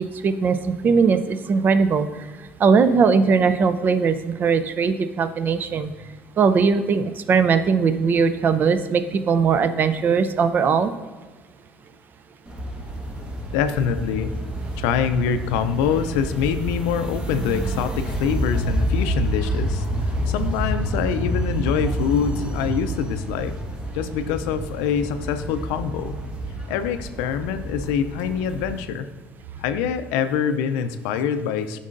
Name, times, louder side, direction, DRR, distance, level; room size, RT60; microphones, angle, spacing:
voice 1, 0.0-2.1 2.6-5.9 6.4-10.9, right 5 dB, 40° right, 12 dB, 0.5 m, -19 dB
sound 1, 12.5-28.8, equal, 20° right, 1.2 m, -28 dB
voice 2, 13.5-14.3 14.8-19.8 20.3-23.5 23.9-26.1 26.7-29.1 29.6-31.8, left 7 dB, 85° left, 10 dB, 0.4 m, -25 dB
8.3 x 5.3 x 2.5 m, 1.4 s
supercardioid pair, 90°, 5 cm